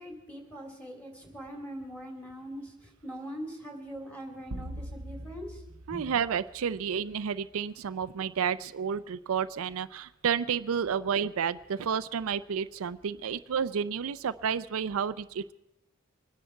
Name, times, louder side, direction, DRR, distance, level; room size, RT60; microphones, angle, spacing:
voice 1, 0.0-6.1, equal, 5° left, 1 dB, 3.1 m, -42 dB
sound 1, 4.5-7.1, right 1 dB, 90° right, 0.8 m, -42 dB
voice 2, 5.9-15.5, right 7 dB, 70° right, 13 dB, 0.4 m, -31 dB
25.0 x 10.0 x 4.5 m, 0.90 s
head